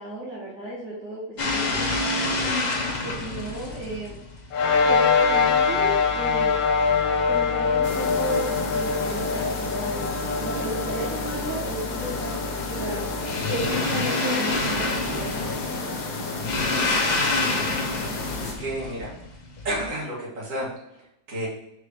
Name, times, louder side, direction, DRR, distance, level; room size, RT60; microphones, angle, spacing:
voice 1, 0.0-2.4 3.0-4.2 4.8-6.5 7.3-10.1 10.4-12.3 12.7-13.1 13.5-15.5, right 2 dB, 65° right, -5 dB, 2.2 m, -34 dB
sound 1, 1.4-19.9, left 2 dB, 40° left, 0.6 m, -30 dB
sound 2, 4.5-17.2, left 5 dB, 75° left, 1.5 m, -25 dB
sound 3, 7.8-18.5, left 3 dB, 60° left, 1.5 m, -33 dB
voice 2, 17.1-17.7 18.4-19.1 19.6-21.5, right 1 dB, 40° right, -5 dB, 2.4 m, -32 dB
4.8 x 4.8 x 4.9 m, 0.81 s
omnidirectional pair, 2.1 m